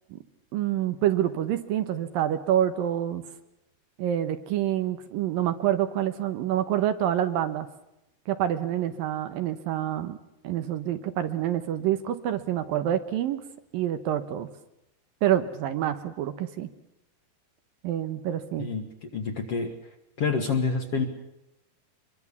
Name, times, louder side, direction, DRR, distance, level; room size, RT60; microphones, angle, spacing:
voice 1, 0.5-3.3 4.0-7.7 8.3-10.2 10.4-13.4 13.7-14.5 15.2-16.7 17.8-18.7, right 11 dB, 70° right, 10 dB, 2.6 m, -27 dB
voice 2, 18.6-21.1, left 4 dB, 50° left, 5 dB, 2.1 m, -28 dB
24.0 x 23.0 x 7.1 m, 0.87 s
omnidirectional pair, 4.5 m